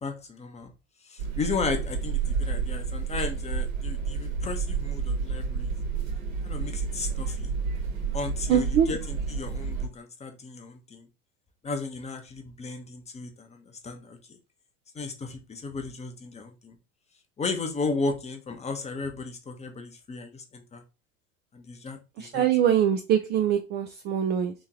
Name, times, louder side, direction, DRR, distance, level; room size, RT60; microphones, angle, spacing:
voice 1, 0.0-0.7 1.0-5.7 6.4-7.5 8.1-11.1 11.6-14.2 14.9-16.7 17.4-20.8 21.5-22.4, left 4 dB, 15° left, 6 dB, 0.7 m, -34 dB
sound 1, 1.2-9.9, right 5 dB, 65° right, 1.3 m, -30 dB
voice 2, 8.5-8.9 22.2-24.5, right 9 dB, 25° right, 6 dB, 0.4 m, -23 dB
3.6 x 3.0 x 3.7 m, 0.29 s
figure-of-eight pair, 75°, 42 cm